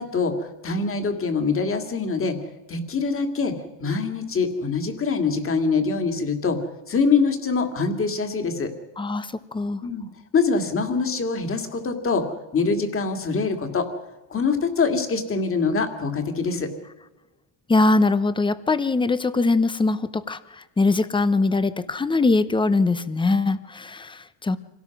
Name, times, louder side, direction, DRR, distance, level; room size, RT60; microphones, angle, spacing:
voice 1, 0.0-2.4 2.7-3.5 3.8-6.6 6.9-8.7 9.8-10.1 10.3-12.2 12.5-13.9 14.3-16.7, left 4 dB, 25° left, 6 dB, 2.4 m, -24 dB
voice 2, 9.0-9.8 17.7-24.6, left 3 dB, 10° left, 14 dB, 0.7 m, -22 dB
26.5 x 17.5 x 6.1 m, 1.1 s
cardioid pair, 145°, 48 cm